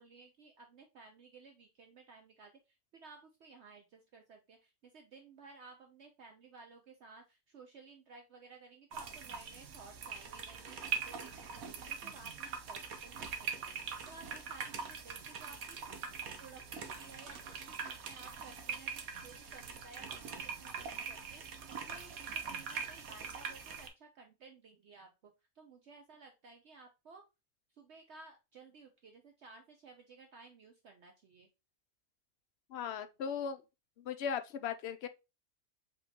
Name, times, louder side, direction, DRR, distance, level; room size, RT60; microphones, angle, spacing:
voice 1, 0.0-2.5 2.9-16.0 16.4-25.1 25.6-27.2 27.8-31.5, right 4 dB, 60° right, 0.9 m, -56 dB
sound 1, 8.9-23.9, right 6 dB, 80° right, 1.3 m, -42 dB
voice 2, 32.7-33.6 34.1-35.1, left 7 dB, 65° left, 0.7 m, -37 dB
5.1 x 3.4 x 2.8 m
omnidirectional pair, 1.5 m